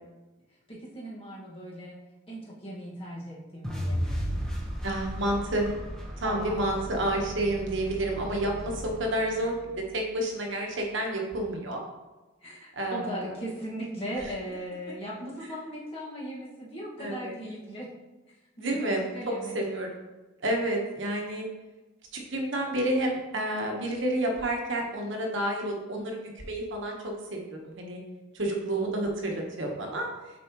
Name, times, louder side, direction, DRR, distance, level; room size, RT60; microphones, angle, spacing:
voice 1, 0.7-2.0 2.3-4.2 6.2-6.8 12.4-17.9 18.6-19.6 25.6-26.1, equal, 30° left, -6 dB, 1.8 m, -38 dB
sound 1, 3.6-9.8, equal, 5° left, 1.1 m, -35 dB
voice 2, 4.8-5.7 6.2-9.5 9.9-11.8 12.8-13.3 17.0-17.3 18.6-20.0 20.4-21.5 22.3-28.0 28.3-30.1, right 1 dB, 65° right, 1 dB, 1.2 m, -30 dB
7.5 x 4.4 x 3.0 m, 1.1 s
head